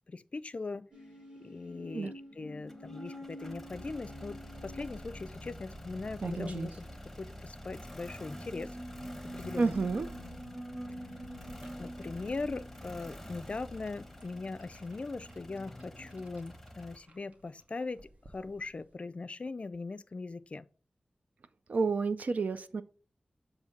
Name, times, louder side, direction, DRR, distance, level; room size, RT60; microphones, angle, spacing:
voice 1, 0.1-0.9 1.4-6.9 7.2-8.8 9.2-9.7 11.8-20.7, left 3 dB, 50° left, 0.4 m, -40 dB
sound 1, 0.9-16.2, equal, 35° right, 2.5 m, -48 dB
sound 2, 2.7-17.0, left 1 dB, 5° left, 0.9 m, -48 dB
sound 3, 4.4-18.9, right 2 dB, 55° right, 1.0 m, -49 dB
voice 2, 9.6-10.1 21.7-22.8, right 4 dB, 75° right, 0.4 m, -29 dB
7.0 x 2.7 x 5.1 m
wide cardioid pair, 70°, 3 cm